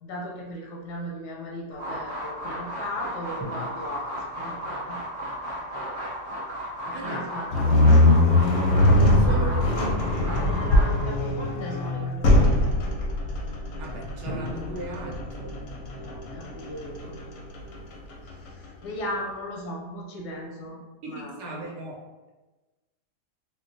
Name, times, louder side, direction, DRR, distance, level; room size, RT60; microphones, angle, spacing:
voice 1, 0.0-5.0 6.8-8.2 9.4-9.8 10.4-12.6 16.0-17.3 18.2-20.8 21.1-21.7, left 1 dB, 85° left, -1 dB, 1.2 m, -37 dB
sound 1, 1.7-11.0, equal, 40° right, 0.8 m, -34 dB
sound 2, 3.4-5.0 8.9-10.8 14.2-16.5, equal, 15° left, 0.4 m, -41 dB
voice 2, 6.9-7.3 9.2-10.1 13.8-15.6 21.0-22.3, right 2 dB, 80° right, -1 dB, 1.3 m, -37 dB
sound 3, 7.5-18.6, left 1 dB, 65° left, 0.8 m, -22 dB
4.2 x 2.1 x 2.7 m, 1.2 s
omnidirectional pair, 1.7 m